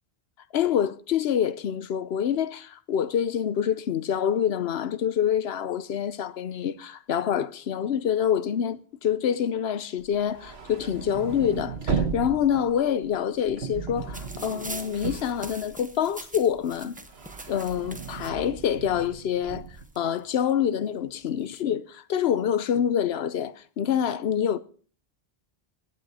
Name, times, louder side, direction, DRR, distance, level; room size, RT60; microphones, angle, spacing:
voice 1, 0.5-17.0 17.5-19.7 20.0-24.6, left 9 dB, 80° left, 0.9 m, -26 dB
sound 1, 10.1-16.2 16.5-19.8, right 6 dB, 80° right, 1.5 m, -35 dB
sound 2, 14.1-18.3 19.2-19.3 19.5-20.5 21.2-21.6, right 1 dB, 10° right, 0.7 m, -43 dB
16.5 x 8.6 x 4.2 m
omnidirectional pair, 1.0 m